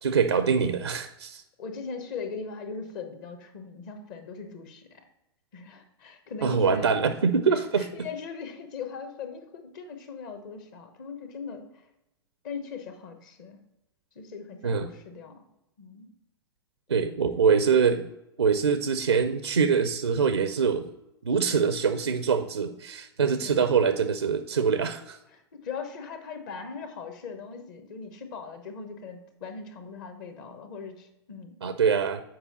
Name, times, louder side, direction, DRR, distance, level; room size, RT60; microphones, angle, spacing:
voice 1, 0.0-1.4 6.4-7.9 14.6-14.9 16.9-18.0 18.4-20.9 21.2-25.2 31.6-32.2, right 6 dB, 80° right, 10 dB, 0.4 m, -24 dB
voice 2, 1.6-5.0 5.5-6.9 7.5-11.8 12.4-13.6 14.1-15.5 15.8-16.1 16.9-17.1 23.4-23.6 25.3-31.6, left 5 dB, 45° left, 7 dB, 1.0 m, -40 dB
7.4 x 4.7 x 4.1 m, 0.90 s
figure-of-eight pair, 100°, 14 cm